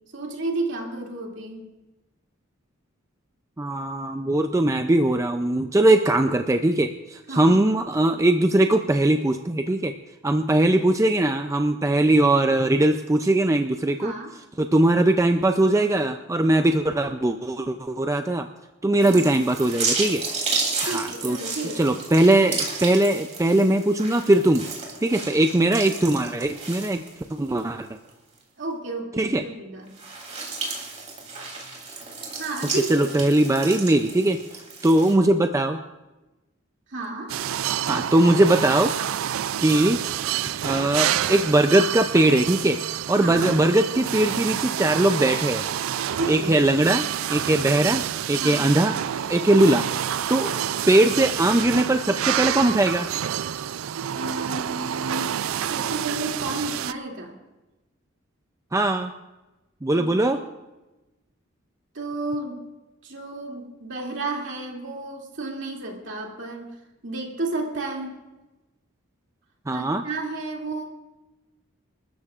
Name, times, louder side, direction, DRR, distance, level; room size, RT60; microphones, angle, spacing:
voice 1, 0.1-1.7 7.3-7.6 14.0-14.3 19.0-19.2 20.8-22.0 28.6-30.0 32.3-33.1 36.9-37.3 43.2-43.5 46.2-46.6 48.4-48.7 50.5-50.6 51.0-51.4 54.1-55.4 55.7-57.3 59.9-60.4 61.9-62.7 63.0-66.7 67.0-68.2 69.7-70.8, right 2 dB, 60° right, 0 dB, 2.7 m, -32 dB
voice 2, 3.6-9.9 10.2-14.1 14.6-18.5 18.8-20.3 20.8-21.4 21.8-24.7 25.0-27.0 27.4-27.9 29.2-29.4 32.9-35.8 37.9-38.9 39.6-40.0 40.6-42.8 43.1-45.6 46.3-48.9 49.3-49.9 50.3-50.5 50.9-53.1 58.7-59.1 59.8-60.4 69.7-70.0, right 1 dB, 15° right, 6 dB, 0.4 m, -20 dB
sound 1, 19.0-27.6 28.0-28.1 29.9-35.1, right 4 dB, 35° right, 3.2 m, -32 dB
sound 2, 37.3-56.9, right 10 dB, 80° right, 0.4 m, -28 dB
28.0 x 13.0 x 2.5 m, 1.1 s
head